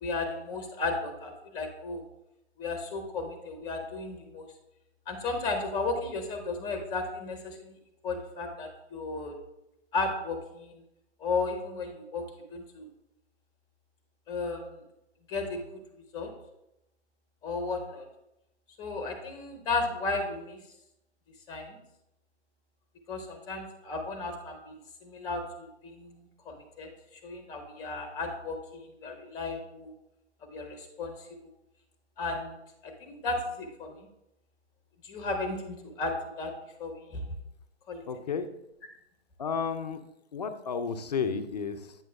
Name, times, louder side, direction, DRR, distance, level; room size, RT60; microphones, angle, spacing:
voice 1, 0.0-2.0 2.6-4.5 5.1-7.8 8.0-9.3 9.9-10.8 11.2-12.2 12.5-12.9 14.3-14.8 15.3-15.8 16.1-16.3 17.4-18.1 18.8-20.6 21.5-21.8 23.1-29.9 30.5-31.3 32.2-32.6 32.8-34.1 35.0-36.5 36.8-37.2 37.9-38.0, left 3 dB, 10° left, 4 dB, 0.7 m, -34 dB
voice 2, 38.1-38.5 39.4-40.0 40.3-42.0, left 6 dB, 35° left, 9 dB, 0.4 m, -32 dB
8.8 x 6.1 x 2.3 m, 0.87 s
figure-of-eight pair, 140°, 35 cm